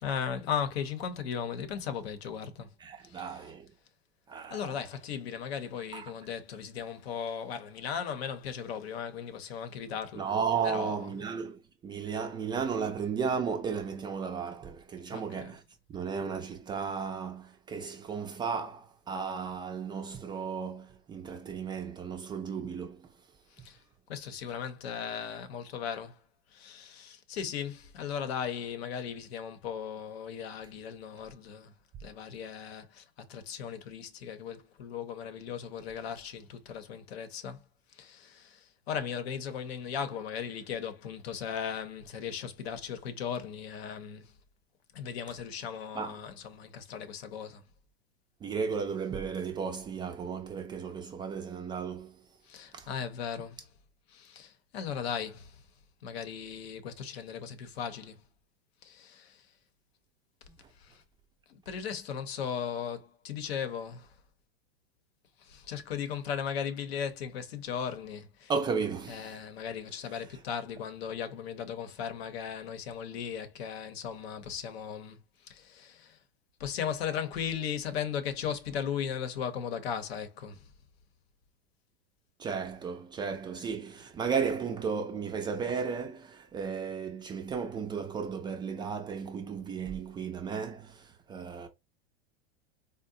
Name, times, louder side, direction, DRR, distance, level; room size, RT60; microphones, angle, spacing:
voice 1, 0.0-2.7 3.1-3.3 4.5-10.3 10.6-11.0 15.1-15.5 23.6-23.8 24.1-26.2 26.5-31.7 32.0-33.0 33.3-37.6 38.0-44.3 44.9-47.6 52.5-53.6 54.1-55.5 56.0-58.2 58.8-59.4 61.5-64.1 65.4-68.5 69.1-75.2 75.5-76.2 76.6-80.6, left 7 dB, 75° left, 0.9 m, -37 dB
voice 2, 2.8-3.7 4.3-4.7 5.9-6.1 10.2-15.6 15.9-23.1 45.9-46.2 48.4-52.2 52.7-52.9 68.5-69.4 70.1-70.2 82.4-91.7, right 6 dB, 15° right, 0.3 m, -34 dB
3.9 x 2.0 x 2.6 m
hypercardioid pair, 125°, 31 cm